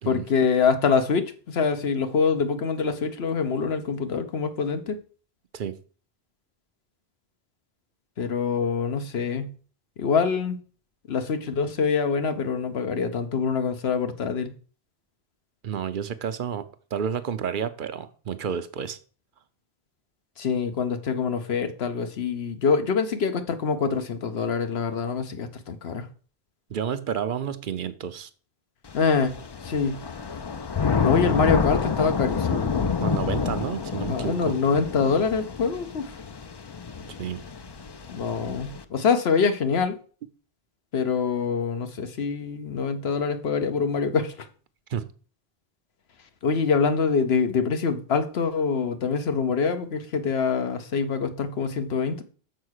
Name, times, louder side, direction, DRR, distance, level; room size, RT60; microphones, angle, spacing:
voice 1, 0.1-5.0 8.2-9.5 10.0-10.6 11.1-14.5 20.4-26.1 28.9-29.3 29.6-30.0 31.0-33.0 34.1-36.1 38.1-40.0 40.9-44.3 46.4-52.2, left 5 dB, 80° left, 1.1 m, -25 dB
voice 2, 15.6-19.0 26.7-28.3 33.0-34.6 37.2-37.4 44.9-45.1, right 8 dB, 60° right, 0.8 m, -30 dB
Thunder / Rain, 28.9-38.8, left 5 dB, 40° left, 0.3 m, -28 dB
6.6 x 4.7 x 6.4 m
omnidirectional pair, 1.1 m